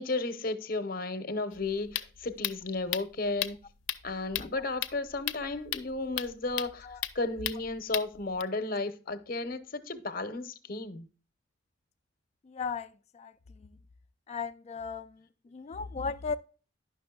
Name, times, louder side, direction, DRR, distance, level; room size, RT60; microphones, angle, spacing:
voice 1, 0.0-3.6 4.0-11.1, left 3 dB, 50° left, 0.7 m, -34 dB
sound 1, 1.5-8.4, left 12 dB, 90° left, 0.5 m, -37 dB
voice 2, 12.5-12.9 13.1-13.3 13.6-13.7 14.3-15.1 15.5-16.4, left 5 dB, 35° left, 0.3 m, -36 dB
10.0 x 6.0 x 2.3 m
head